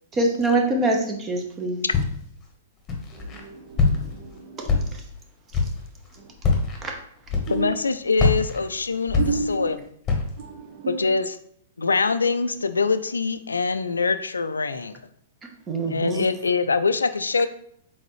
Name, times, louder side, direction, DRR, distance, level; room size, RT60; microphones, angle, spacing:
voice 1, 0.1-1.8 6.8-6.9 15.7-16.3, right 2 dB, 25° right, 2 dB, 0.9 m, -24 dB
Walk footsteps, 1.9-2.4 2.9-3.4 3.8-4.2 4.6-5.2 5.5-5.9 6.4-6.8 7.3-7.8 8.2-9.7 10.0-10.4, left 4 dB, 25° left, 1.1 m, -23 dB
voice 2, 3.1-4.8 7.5-7.7 9.2-9.7 10.4-11.0, right 5 dB, 45° right, 2 dB, 0.7 m, -32 dB
voice 3, 7.5-9.8 10.9-11.4 11.8-15.0 15.9-17.5, left 4 dB, 90° left, 11 dB, 0.3 m, -24 dB
4.2 x 3.9 x 3.1 m, 0.66 s
hypercardioid pair, 115°, 0 cm